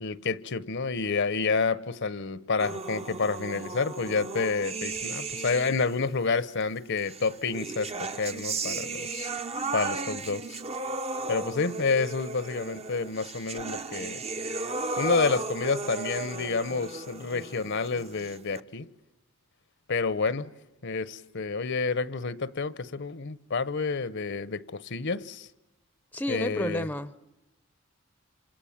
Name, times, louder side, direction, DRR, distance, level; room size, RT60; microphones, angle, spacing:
voice 1, 0.0-9.3 9.7-10.6 11.3-14.2 15.0-18.9 19.9-20.5 20.8-25.5 26.3-26.9, left 4 dB, 55° left, 1.0 m, -29 dB
sound 1, 2.6-6.1 7.1-18.6, right 3 dB, 30° right, 1.1 m, -35 dB
voice 2, 26.1-27.2, left 1 dB, 10° left, 0.9 m, -31 dB
27.5 x 27.5 x 7.4 m
head